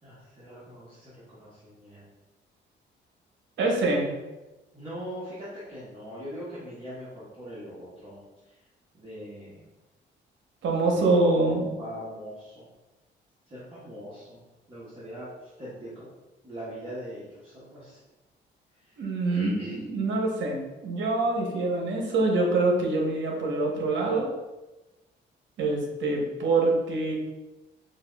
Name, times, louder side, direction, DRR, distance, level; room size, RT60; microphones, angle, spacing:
voice 1, 0.0-2.1 4.7-8.2 8.4-8.6 8.9-9.6 10.8-11.2 11.8-12.6 13.5-14.4 14.7-16.1 16.4-18.0 18.8-19.0 19.2-19.8, equal, 25° right, -11 dB, 1.3 m, -42 dB
voice 2, 3.6-4.1 10.6-11.7 19.0-24.3 25.6-27.1, right 2 dB, 70° right, 0 dB, 1.0 m, -25 dB
5.7 x 2.5 x 2.3 m, 1.1 s
cardioid pair, 90°, 20 cm